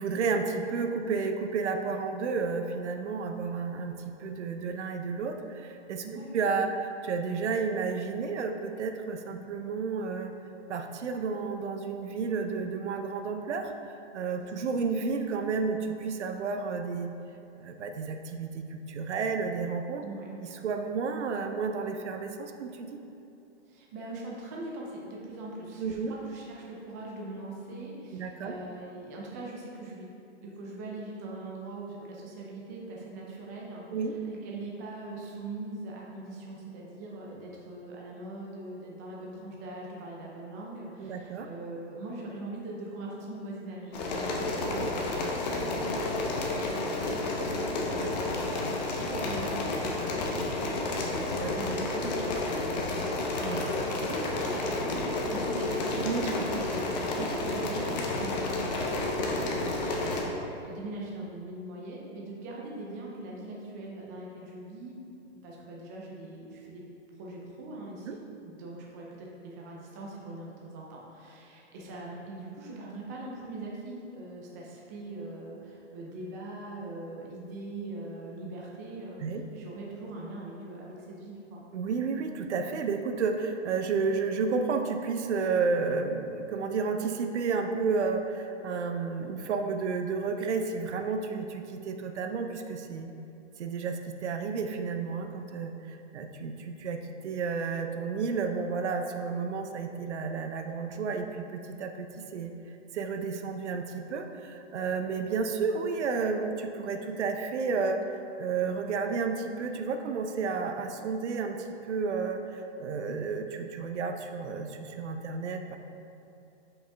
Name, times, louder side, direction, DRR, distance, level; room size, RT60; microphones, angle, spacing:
voice 1, 0.0-6.0 6.3-10.3 10.7-17.1 17.6-20.0 20.6-23.0 25.8-26.1 28.1-28.5 33.9-34.2 41.0-41.5 44.6-44.9 51.4-51.6 53.4-53.7 56.0-56.5 68.1-68.2 79.2-79.4 81.7-93.1 93.6-102.5 102.9-115.8, right 4 dB, 70° right, 5 dB, 0.8 m, -31 dB
voice 2, 23.7-30.1 30.4-33.9 34.2-51.3 51.6-65.0 65.3-66.8 67.2-81.6, right 2 dB, 15° right, -3 dB, 0.4 m, -42 dB
sound 1, 43.9-60.2, left 2 dB, 35° left, 0.9 m, -31 dB
7.0 x 5.4 x 3.4 m, 2.8 s
hypercardioid pair, 155°, 35 cm